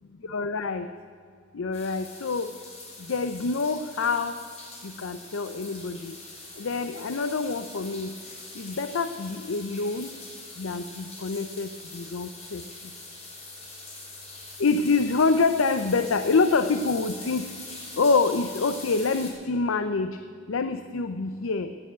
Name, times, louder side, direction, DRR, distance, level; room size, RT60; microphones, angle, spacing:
voice 1, 0.3-0.9 1.5-2.5 3.1-4.3 4.8-6.2 6.6-8.1 8.6-10.1 10.6-12.6 14.6-17.5 18.0-20.2 20.5-21.7, left 4 dB, 90° left, 10 dB, 0.6 m, -26 dB
sound 1, 1.7-19.3, left 2 dB, 35° left, 3.7 m, -43 dB
16.5 x 7.0 x 9.0 m, 2.2 s
head